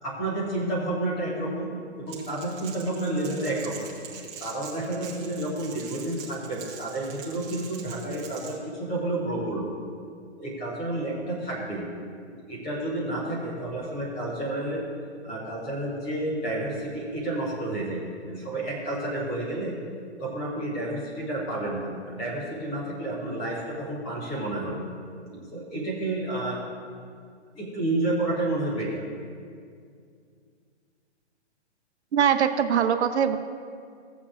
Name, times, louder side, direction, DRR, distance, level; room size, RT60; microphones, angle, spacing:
voice 1, 0.0-1.7 2.0-3.9 4.4-9.7 10.4-11.9 12.5-14.8 15.2-19.7 20.2-24.8 25.3-26.6 27.5-29.0, right 2 dB, 5° left, -6 dB, 0.4 m, -30 dB
Crackle, 2.1-8.6, right 6 dB, 20° right, 1.2 m, -43 dB
voice 2, 32.1-33.4, right 8 dB, 70° right, 7 dB, 0.7 m, -22 dB
15.5 x 8.4 x 2.4 m, 2.2 s
hypercardioid pair, 155°, 35 cm